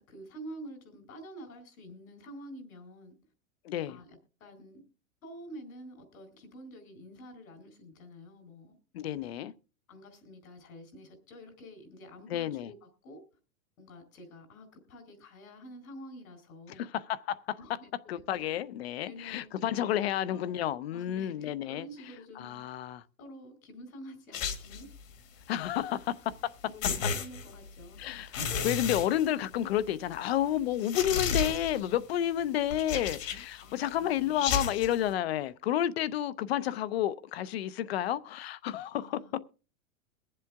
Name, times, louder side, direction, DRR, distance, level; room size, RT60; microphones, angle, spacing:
voice 1, 0.0-3.2 3.9-4.8 5.2-9.3 9.9-13.2 13.8-16.9 17.6-17.9 18.3-18.5 19.0-19.7 20.1-20.5 20.9-22.8 23.2-24.9 26.6-28.0 33.6-34.6 38.9-39.3, equal, 80° left, 4.5 m, -48 dB
voice 2, 3.6-4.0 8.9-9.5 12.3-12.7 16.8-17.6 18.1-21.9 22.4-23.0 25.5-26.5 28.0-39.2, left 11 dB, 50° left, 0.6 m, -31 dB
sound 1, 24.3-25.0 26.3-26.4 26.8-27.8 28.3-29.8 30.1-30.2 30.8-31.9 32.7-33.6 34.3-35.0, left 6 dB, 65° left, 2.0 m, -32 dB
22.5 x 7.6 x 3.5 m
supercardioid pair, 175°, 42 cm